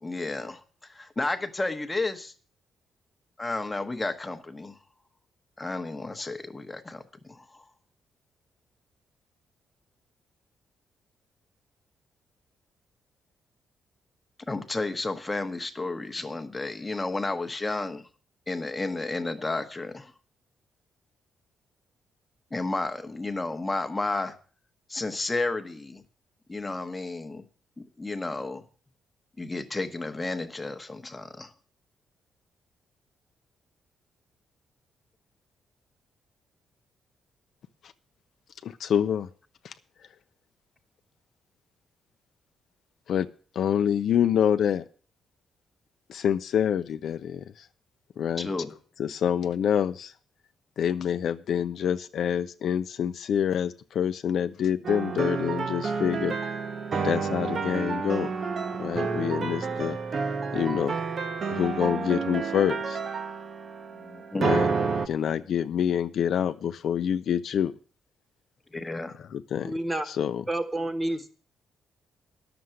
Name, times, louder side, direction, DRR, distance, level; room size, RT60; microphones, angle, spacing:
voice 1, 0.0-2.3 3.4-4.8 5.6-7.6 14.5-18.1 18.5-20.1 22.5-24.3 24.9-26.0 26.5-27.4 27.8-28.6 29.4-31.5 48.4-48.7 63.9-64.5 68.7-69.2, left 2 dB, 15° left, 8 dB, 1.0 m, -32 dB
voice 2, 38.6-39.3 39.6-39.7 43.1-43.3 43.5-44.8 46.1-47.7 48.2-48.5 49.0-50.1 50.8-56.4 57.0-58.3 58.8-60.0 60.5-60.9 61.5-63.0 64.4-64.7 65.1-67.7 69.1-69.7 70.1-70.4, left 9 dB, 60° left, 10 dB, 0.6 m, -26 dB
sound 1, 54.8-65.1, right 5 dB, 40° right, 0.9 m, -30 dB
voice 3, 69.6-70.1 70.5-71.3, right 1 dB, 10° right, 8 dB, 1.2 m, -29 dB
11.0 x 7.0 x 7.6 m, 0.41 s
cardioid pair, 155°, 0 cm